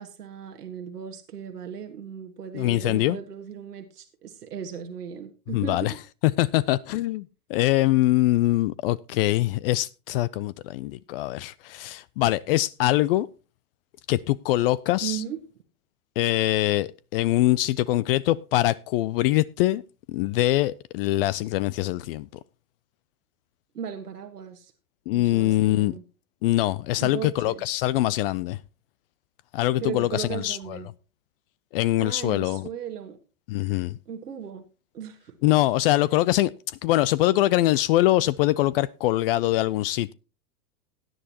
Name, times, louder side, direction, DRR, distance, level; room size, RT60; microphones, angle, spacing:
voice 1, 0.0-5.9 15.0-15.4 23.7-24.7 25.1-26.0 27.0-27.6 29.8-30.9 32.0-33.2 34.0-34.6 34.9-35.4, right 8 dB, 80° right, 1.6 m, -37 dB
voice 2, 2.5-3.2 5.5-5.9 6.2-13.3 14.1-15.2 16.2-19.8 20.1-22.3 25.1-25.9 26.4-28.6 29.5-30.8 31.7-32.6 33.5-34.0 35.4-36.5 36.8-40.1, left 16 dB, 40° left, 0.5 m, -23 dB
17.0 x 10.5 x 2.8 m
hypercardioid pair, 100°, 46 cm